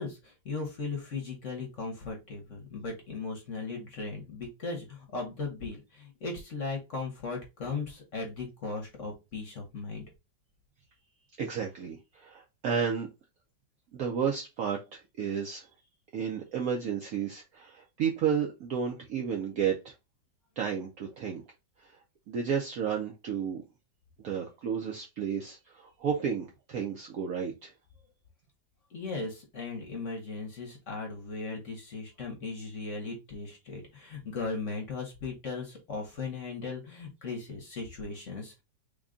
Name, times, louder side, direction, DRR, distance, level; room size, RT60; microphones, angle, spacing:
voice 1, 0.0-10.0 28.9-38.6, left 4 dB, 50° left, 1.1 m, -37 dB
voice 2, 11.4-13.1 13.9-15.7 16.1-19.9 20.6-21.4 21.8-22.0 22.3-23.6 24.2-27.7, right 7 dB, 65° right, 0.9 m, -32 dB
3.6 x 2.3 x 3.6 m
omnidirectional pair, 2.0 m